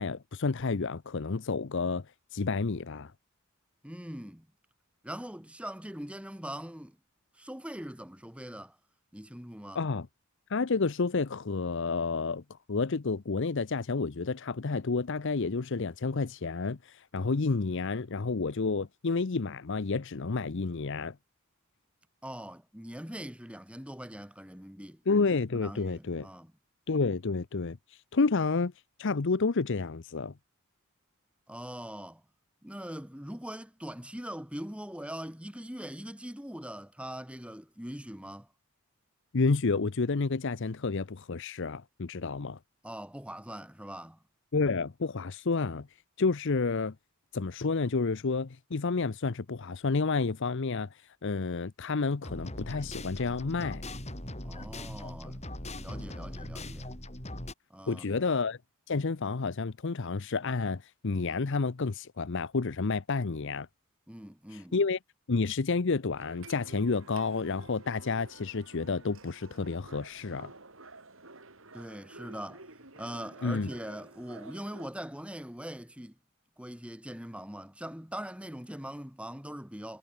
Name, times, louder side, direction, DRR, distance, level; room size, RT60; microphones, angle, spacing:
voice 1, 0.0-2.1 2.3-3.1 9.7-10.1 10.5-21.2 25.1-26.3 26.9-28.7 29.0-30.3 39.3-42.6 44.5-45.9 46.2-46.9 47.3-53.8 57.9-58.6 58.9-63.7 64.5-65.0 65.3-70.5 73.4-73.7, left 4 dB, 60° left, 0.7 m, -30 dB
voice 2, 3.8-4.5 5.0-7.0 7.4-8.8 9.1-9.8 22.2-25.0 25.5-26.5 31.5-32.2 32.6-38.5 42.8-44.2 54.4-55.5 55.8-56.9 57.7-58.2 64.1-64.8 71.7-72.7 73.0-76.1 76.6-80.0, equal, 5° right, 2.9 m, -42 dB
sound 1, 52.2-57.5, left 1 dB, 30° left, 6.0 m, -40 dB
sound 2, 66.2-74.9, right 3 dB, 65° right, 6.5 m, -51 dB
head